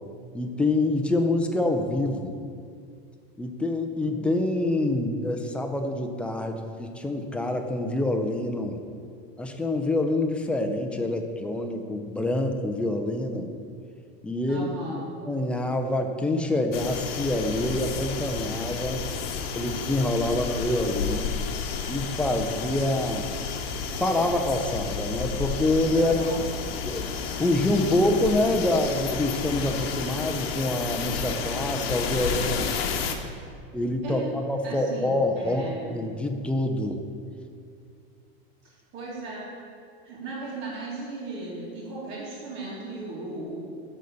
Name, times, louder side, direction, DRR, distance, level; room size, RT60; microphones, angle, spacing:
voice 1, 0.3-2.3 3.4-8.8 9.4-13.5 14.2-14.7 15.3-19.0 19.5-21.3 21.9-23.3 24.0-26.1 26.8-32.7 33.7-37.0, left 1 dB, 5° left, 4 dB, 0.3 m, -26 dB
voice 2, 14.5-15.0 25.9-26.4 34.0-36.0 38.6-39.5 40.0-43.6, right 2 dB, 35° right, -10 dB, 2.3 m, -37 dB
sound 1, 16.7-33.2, left 6 dB, 75° left, 1.0 m, -31 dB
11.5 x 4.0 x 6.8 m, 2.3 s
supercardioid pair, 155°, 30 cm